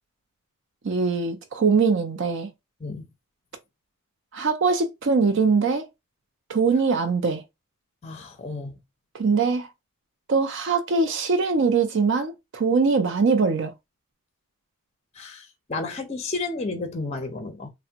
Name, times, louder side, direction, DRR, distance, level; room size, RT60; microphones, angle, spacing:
voice 1, 0.8-2.5 4.3-5.9 6.5-7.4 9.1-9.7 10.3-13.7, right 4 dB, 55° right, 0.4 m, -22 dB
voice 2, 8.0-8.8 15.2-17.7, left 3 dB, 30° left, 0.5 m, -32 dB
3.3 x 2.0 x 2.7 m
head